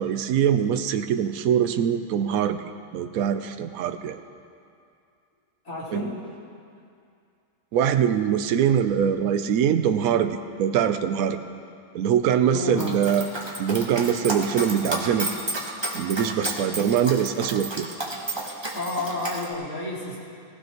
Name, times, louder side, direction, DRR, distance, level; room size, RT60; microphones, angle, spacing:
voice 1, 0.0-2.6 2.9-4.2 5.9-6.1 7.7-11.4 11.9-13.3 13.6-15.3 15.9-17.9, right 8 dB, 75° right, 9 dB, 1.1 m, -23 dB
voice 2, 5.6-6.1 12.5-13.0 13.7-13.9 18.7-20.2, left 2 dB, 70° left, -7 dB, 4.6 m, -31 dB
Dog, 12.8-19.5, right 1 dB, 20° right, 1.2 m, -32 dB
18.0 x 16.0 x 3.0 m, 2.4 s
omnidirectional pair, 1.5 m